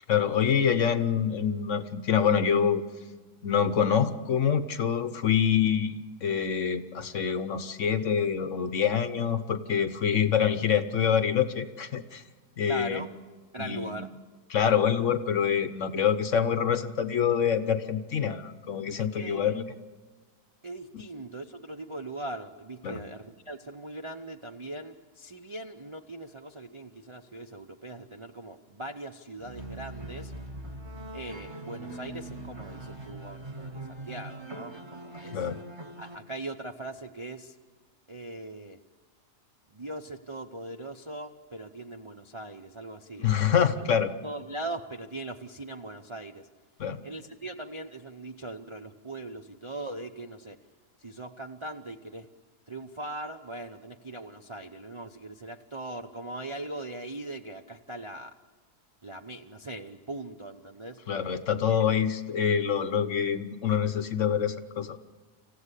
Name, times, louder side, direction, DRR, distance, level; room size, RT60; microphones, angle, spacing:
voice 1, 0.1-2.8 3.4-12.2 12.6-13.1 13.6-14.0 14.5-19.6 20.9-21.0 22.8-23.0 35.3-35.6 43.2-44.1 46.8-47.0 61.1-65.0, left 8 dB, 55° left, 12 dB, 1.1 m, -26 dB
voice 2, 12.7-13.1 13.5-14.1 19.1-19.6 20.6-30.3 31.1-35.5 36.0-37.6 38.1-38.8 39.7-43.9 44.2-46.5 47.0-50.6 51.0-52.3 52.7-58.3 59.0-61.0 61.7-62.0, right 2 dB, 40° right, 4 dB, 0.4 m, -40 dB
sound 1, 29.4-36.2, right 2 dB, 15° right, 1.6 m, -41 dB
26.5 x 15.0 x 8.3 m, 1.4 s
omnidirectional pair, 1.7 m